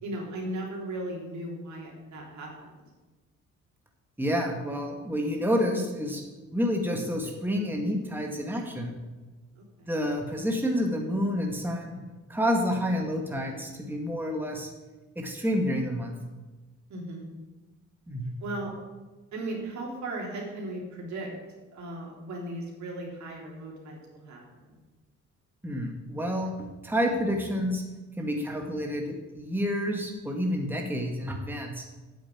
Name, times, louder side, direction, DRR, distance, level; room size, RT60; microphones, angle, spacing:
voice 1, 0.0-2.7 9.6-9.9 16.9-17.3 18.4-18.7 19.3-21.3 21.7-24.4 24.7-24.8, right 1 dB, 70° right, -2 dB, 3.7 m, -37 dB
voice 2, 4.2-6.2 6.5-8.9 9.9-12.0 12.3-14.7 15.2-16.1 18.1-18.3 25.6-27.8 28.2-31.8, equal, 5° right, 1 dB, 1.9 m, -29 dB
8.9 x 7.6 x 8.5 m, 1.2 s
cardioid pair, 90°, 30 cm